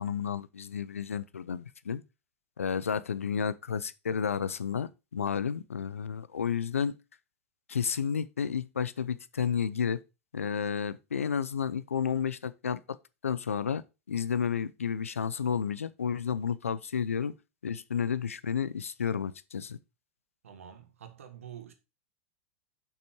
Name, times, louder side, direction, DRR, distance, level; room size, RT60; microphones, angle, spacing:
voice 1, 0.0-2.0 2.6-7.0 7.7-10.0 10.3-13.0 13.2-17.3 17.6-19.8, left 7 dB, 90° left, 0.6 m, -31 dB
voice 2, 20.4-21.7, right 9 dB, 80° right, 1.7 m, -47 dB
7.2 x 5.7 x 4.6 m
hypercardioid pair, 100°, 7 cm